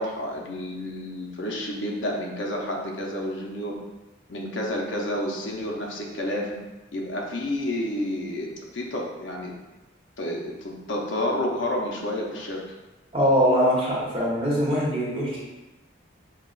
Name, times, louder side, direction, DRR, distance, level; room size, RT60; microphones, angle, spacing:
voice 1, 0.0-3.8 4.3-6.5 6.9-9.5 10.2-12.6, left 1 dB, 75° left, -1 dB, 0.7 m, -30 dB
voice 2, 13.1-15.4, equal, 25° right, -7 dB, 1.2 m, -22 dB
5.7 x 2.4 x 2.4 m, 1.0 s
head